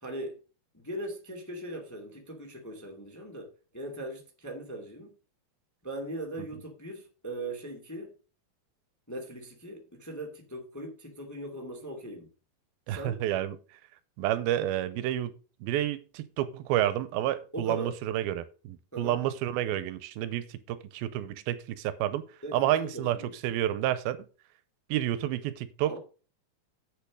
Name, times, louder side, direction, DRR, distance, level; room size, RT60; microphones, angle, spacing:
voice 1, 0.0-0.3 0.7-5.1 5.8-8.1 9.1-12.3 12.9-13.2 17.5-17.9 18.9-19.2 22.4-23.3 25.9-26.0, right 1 dB, 5° left, 1.4 m, -39 dB
voice 2, 12.9-13.6 14.2-15.3 15.6-22.3 22.5-24.2 24.9-26.0, right 12 dB, 90° right, 2.6 m, -30 dB
8.2 x 6.8 x 6.2 m
omnidirectional pair, 4.3 m